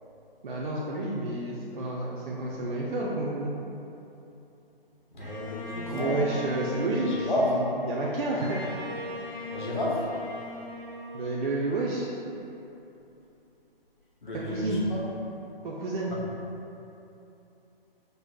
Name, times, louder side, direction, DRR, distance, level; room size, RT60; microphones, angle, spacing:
voice 1, 0.4-3.5 5.9-8.7 11.1-12.1 14.3-14.9 15.6-16.1, right 2 dB, 55° right, -5 dB, 0.4 m, -30 dB
voice 2, 5.1-6.2 7.0-7.5 9.5-10.0 14.2-15.0, left 1 dB, 55° left, -5 dB, 0.8 m, -31 dB
Bowed string instrument, 5.2-12.4, left 1 dB, 10° left, 0.4 m, -39 dB
5.1 x 2.0 x 2.2 m, 2.9 s
figure-of-eight pair, 140°, 30 cm